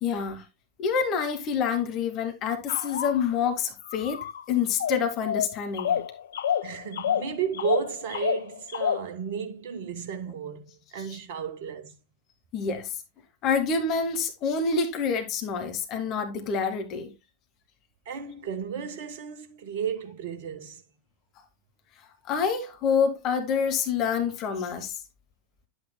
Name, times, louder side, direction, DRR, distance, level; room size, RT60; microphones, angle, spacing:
voice 1, 0.0-0.4 0.8-6.0 12.5-12.9 13.4-17.1 22.3-24.9, left 6 dB, 35° left, 1.6 m, -27 dB
sound 1, 2.7-3.2 3.9-4.4 4.8-9.0, left 9 dB, 65° left, 0.4 m, -29 dB
voice 2, 6.6-11.9 18.0-20.8, right 7 dB, 50° right, 1.2 m, -33 dB
10.5 x 8.4 x 2.2 m
figure-of-eight pair, 90°, 0 cm